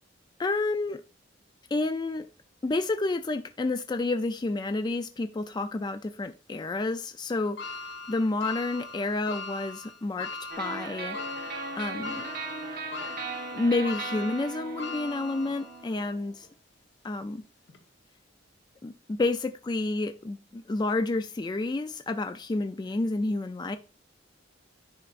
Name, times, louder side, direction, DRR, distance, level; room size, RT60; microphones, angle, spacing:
voice 1, 0.4-1.0 1.7-2.3 2.6-7.7 8.1-11.2 11.8-12.3 13.5-16.5 17.0-17.4 18.8-23.8, left 2 dB, 20° left, 0.3 m, -30 dB
sound 1, 7.6-15.9 16.4-16.5 17.7-17.8, left 3 dB, 65° left, 1.0 m, -40 dB
sound 2, 10.5-16.3, right 3 dB, 55° right, 1.3 m, -38 dB
9.9 x 5.1 x 2.5 m
head